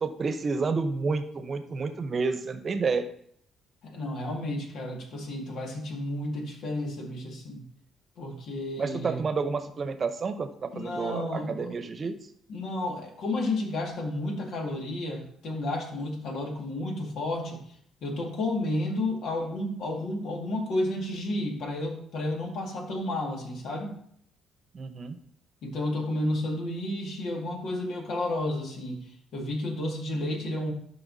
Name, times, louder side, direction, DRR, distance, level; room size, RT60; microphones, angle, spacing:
voice 1, 0.0-3.1 8.8-12.1 24.7-25.2, right 4 dB, 40° right, 9 dB, 0.9 m, -30 dB
voice 2, 3.8-7.7 8.2-9.2 10.7-11.7 12.5-17.6 18.0-23.9 25.6-30.7, left 1 dB, 70° left, 1 dB, 2.0 m, -32 dB
12.5 x 5.6 x 2.8 m, 0.66 s
cardioid pair, 95°, 0 cm